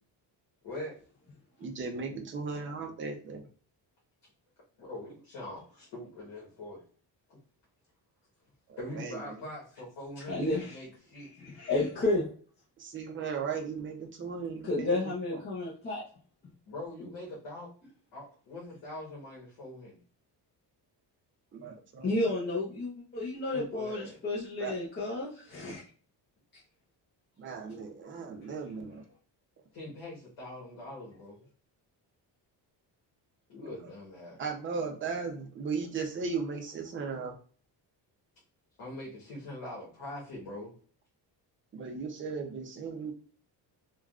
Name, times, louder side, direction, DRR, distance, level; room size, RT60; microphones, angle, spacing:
voice 1, 0.6-1.0 4.8-6.8 7.3-7.4 8.8-11.3 16.7-17.7 18.1-20.0 23.5-24.2 29.7-31.5 33.5-34.4 38.8-40.7, left 1 dB, 75° left, -5 dB, 1.3 m, -43 dB
voice 2, 1.6-3.4 8.7-9.4 12.8-15.0 21.5-22.1 24.6-24.8 27.4-29.0 34.4-37.4 41.7-43.1, right 5 dB, 30° right, 2 dB, 0.5 m, -36 dB
voice 3, 10.3-10.8 11.4-12.3 14.6-16.0 17.0-17.1 22.0-25.8, left 2 dB, 25° left, -6 dB, 0.6 m, -31 dB
3.5 x 2.3 x 2.3 m, 0.43 s
cardioid pair, 150°, 43 cm